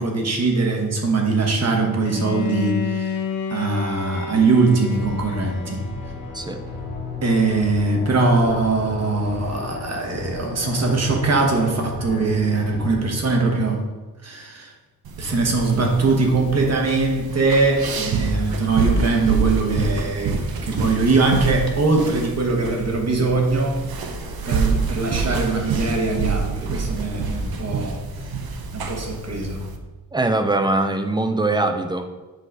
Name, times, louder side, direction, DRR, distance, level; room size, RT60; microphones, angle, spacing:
voice 1, 0.0-3.2 3.5-5.9 7.2-13.8 14.2-14.7 15.2-23.8 24.4-28.4 28.7-29.7, right 3 dB, 45° right, 1 dB, 1.3 m, -21 dB
Bowed string instrument, 2.0-7.0, left 6 dB, 55° left, 0.8 m, -31 dB
sound 1, 4.4-13.1, left 2 dB, 25° left, 1.4 m, -34 dB
sound 2, 15.0-29.8, right 4 dB, 70° right, 0.9 m, -27 dB
voice 2, 30.1-32.0, right 2 dB, 10° right, 7 dB, 0.5 m, -22 dB
7.7 x 3.9 x 6.1 m, 1.2 s
wide cardioid pair, 175°, 37 cm